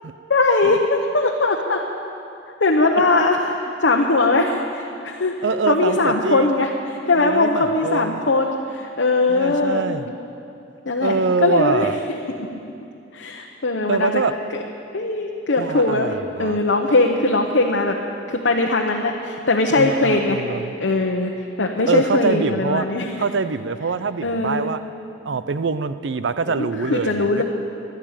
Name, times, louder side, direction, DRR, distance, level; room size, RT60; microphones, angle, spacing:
voice 1, 0.3-1.8 2.6-5.3 5.7-9.9 10.9-11.2 11.4-11.9 13.1-14.2 14.9-16.1 16.4-18.0 18.3-20.4 20.8-21.3 21.6-23.1 24.2-24.7 26.5-27.4, left 2 dB, 65° left, 0 dB, 1.0 m, -20 dB
voice 2, 5.4-6.7 7.1-8.2 9.3-10.1 11.0-12.0 13.9-14.3 15.6-16.6 19.8-20.7 21.9-22.9 23.2-24.8 25.2-27.4, right 4 dB, 65° right, 13 dB, 0.6 m, -24 dB
13.5 x 11.5 x 8.9 m, 2.7 s
head